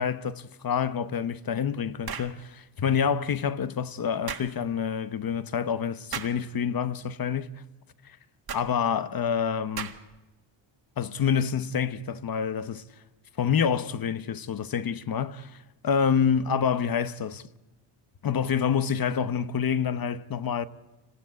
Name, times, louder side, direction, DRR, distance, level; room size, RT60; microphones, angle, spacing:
voice 1, 0.0-7.6 8.0-8.2 8.5-9.9 11.0-12.8 13.4-17.4 18.2-20.7, left 7 dB, 45° left, 0.9 m, -27 dB
sound 1, 2.0-2.4 4.3-4.5 6.1-6.4 8.5-8.7 9.8-10.2, right 7 dB, 50° right, 1.9 m, -35 dB
27.0 x 15.5 x 9.5 m
wide cardioid pair, 145°, 49 cm